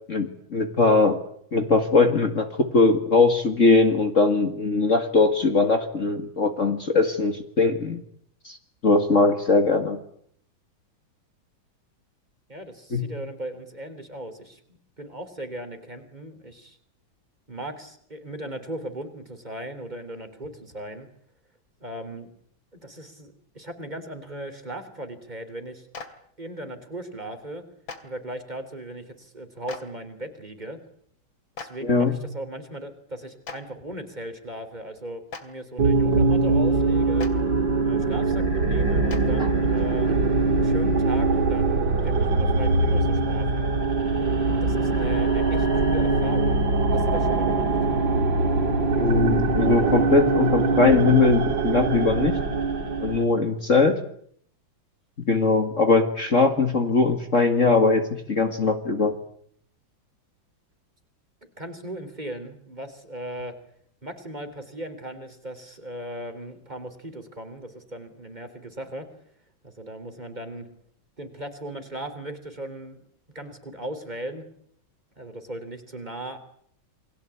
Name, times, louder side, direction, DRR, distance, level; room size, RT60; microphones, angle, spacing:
voice 1, 0.1-1.2 1.5-8.0 8.4-8.6 8.8-10.0 12.9-13.0 31.8-32.2 39.4-39.5 49.0-52.4 53.0-54.0 55.2-59.2, left 3 dB, 40° left, 6 dB, 2.2 m, -20 dB
voice 2, 12.5-14.6 15.0-16.8 17.5-21.1 21.8-22.3 22.7-25.9 26.4-27.6 28.0-30.8 31.6-37.3 37.8-43.7 44.6-47.7 61.6-63.5 64.0-69.1 69.6-70.7 71.2-73.0 73.3-74.4 75.2-76.4, right 1 dB, 20° right, 7 dB, 3.7 m, -37 dB
Clapping, 25.9-26.1 27.9-28.0 29.7-29.8 31.6-31.7 33.4-33.6 35.3-35.4 37.2-37.3 39.1-39.2, left 4 dB, 75° left, 3.4 m, -36 dB
sound 1, 35.8-53.2, right 3 dB, 65° right, 3.6 m, -22 dB
29.0 x 22.0 x 8.6 m, 0.65 s
omnidirectional pair, 2.2 m